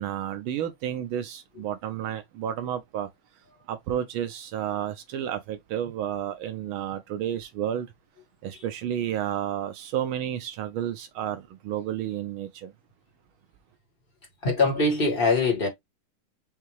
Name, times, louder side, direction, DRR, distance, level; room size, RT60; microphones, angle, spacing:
voice 1, 0.0-3.1 3.7-7.9 8.4-12.7, right 10 dB, 80° right, 1.5 m, -31 dB
voice 2, 14.4-15.7, left 3 dB, 30° left, 1.6 m, -23 dB
5.6 x 2.8 x 3.0 m
omnidirectional pair, 2.3 m